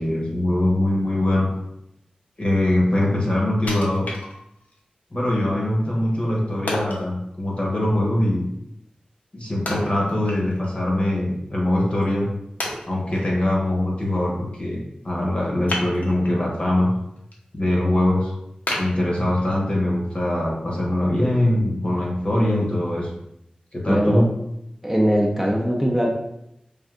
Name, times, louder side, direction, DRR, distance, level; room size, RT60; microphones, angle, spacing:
voice 1, 0.0-1.5 2.4-4.1 5.1-8.4 9.3-12.3 12.9-16.9 17.5-18.3 18.8-23.1 23.7-24.3, left 1 dB, 45° left, -3 dB, 1.0 m, -22 dB
Wood, 3.7-4.8 5.3-5.4 6.7-7.1 9.7-10.8 11.1-11.2 11.9-12.0 12.6-13.3 15.7-16.4 16.9-17.3 17.8-17.9 18.7-19.7 20.2-20.3, left 1 dB, 70° left, 0.6 m, -31 dB
voice 2, 23.9-24.2 24.8-26.1, equal, 10° right, -2 dB, 0.6 m, -20 dB
3.3 x 2.5 x 2.5 m, 0.81 s
cardioid pair, 45°, 3 cm